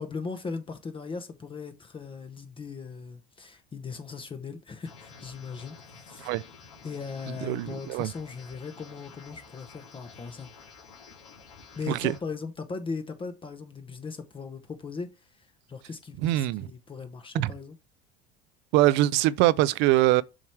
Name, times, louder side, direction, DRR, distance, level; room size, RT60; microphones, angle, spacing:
voice 1, 0.0-6.3 6.8-10.5 11.7-17.8, left 4 dB, 25° left, 0.8 m, -38 dB
sound 1, 4.8-12.2, left 5 dB, 85° left, 1.9 m, -50 dB
voice 2, 7.4-8.1 11.9-12.1 16.2-16.7 17.3-17.5 18.7-20.2, right 16 dB, 70° right, 0.5 m, -23 dB
7.3 x 3.1 x 4.5 m
supercardioid pair, 80°, 19 cm